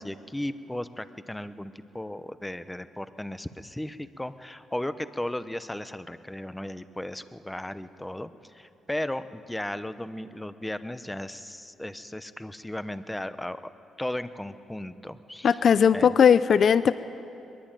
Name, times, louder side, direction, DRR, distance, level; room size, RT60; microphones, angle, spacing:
voice 1, 0.0-13.6 14.0-15.6 15.9-16.1, left 1 dB, 10° left, 12 dB, 0.9 m, -35 dB
voice 2, 15.4-16.9, left 7 dB, 55° left, 15 dB, 0.6 m, -18 dB
22.0 x 22.0 x 9.1 m, 2.8 s
cardioid pair, 90°, 0 cm